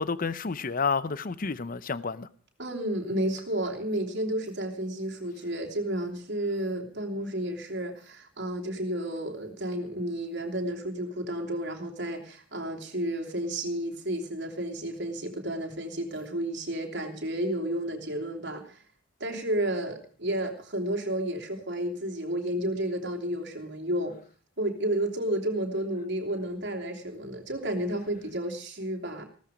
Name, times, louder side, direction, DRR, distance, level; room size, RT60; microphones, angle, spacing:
voice 1, 0.0-2.3, left 4 dB, 40° left, 0.6 m, -30 dB
voice 2, 2.6-18.8 19.2-24.2 24.6-29.3, right 1 dB, 55° right, 3.0 m, -31 dB
16.0 x 13.5 x 5.1 m
head